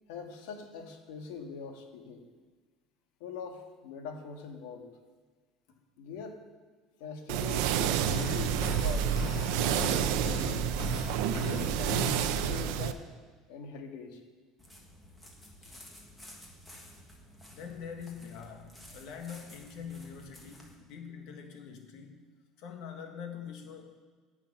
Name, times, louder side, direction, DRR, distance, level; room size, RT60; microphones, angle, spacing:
voice 1, 0.1-2.2 3.2-4.9 6.0-6.4 7.0-9.1 9.5-10.7 11.2-13.0 13.5-14.2 15.6-15.8, left 5 dB, 85° left, 3 dB, 1.7 m, -42 dB
sound 1, 7.3-12.9, right 10 dB, 70° right, 0.6 m, -29 dB
sound 2, 8.1-12.5, left 3 dB, 35° left, 1.2 m, -38 dB
sound 3, 14.6-20.7, left 1 dB, 5° left, 1.5 m, -53 dB
voice 2, 17.5-22.3 22.6-24.0, left 7 dB, 55° left, 4 dB, 1.7 m, -44 dB
17.5 x 6.1 x 5.5 m, 1.4 s
cardioid pair, 175°, 0 cm